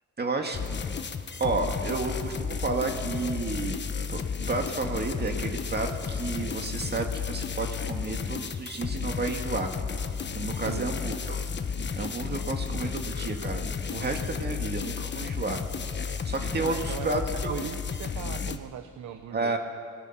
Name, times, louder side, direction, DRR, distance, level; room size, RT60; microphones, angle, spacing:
voice 1, 0.2-0.6 1.4-3.8 4.1-4.2 4.5-9.7 10.3-11.4 12.0-13.6 13.9-15.6 16.2-17.5 19.3-19.6, right 3 dB, 35° right, 3 dB, 2.2 m, -31 dB
sound 1, 0.5-18.6, left 6 dB, 35° left, 1.2 m, -33 dB
voice 2, 16.6-19.6, right 9 dB, 75° right, 8 dB, 1.2 m, -39 dB
25.5 x 19.0 x 6.0 m, 2.6 s
cardioid pair, 90°, 30 cm